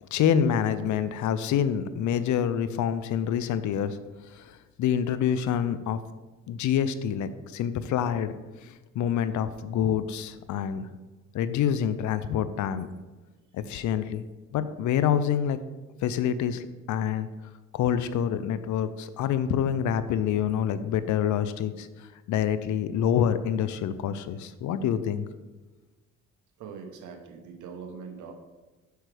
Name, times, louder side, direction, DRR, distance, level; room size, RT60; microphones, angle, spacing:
voice 1, 0.0-4.0 4.3-6.0 6.5-10.9 11.3-12.9 13.5-14.2 14.5-15.6 16.0-17.3 17.7-25.3, left 9 dB, 75° left, 13 dB, 0.6 m, -27 dB
voice 2, 26.6-28.3, right 5 dB, 85° right, 5 dB, 1.1 m, -42 dB
7.9 x 6.1 x 3.4 m, 1.2 s
cardioid pair, 90°, 30 cm